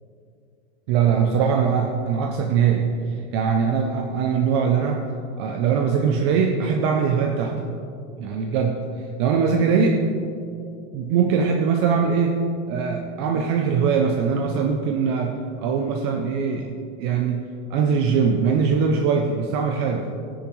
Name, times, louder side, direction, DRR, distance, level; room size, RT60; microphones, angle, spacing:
voice 1, 0.9-5.0 5.4-7.6 8.2-10.0 10.9-12.4 12.7-16.7 17.0-17.4 17.7-20.1, right 6 dB, 25° right, 3 dB, 0.4 m, -22 dB
13.5 x 10.0 x 3.0 m, 2.6 s
supercardioid pair, 160°, 34 cm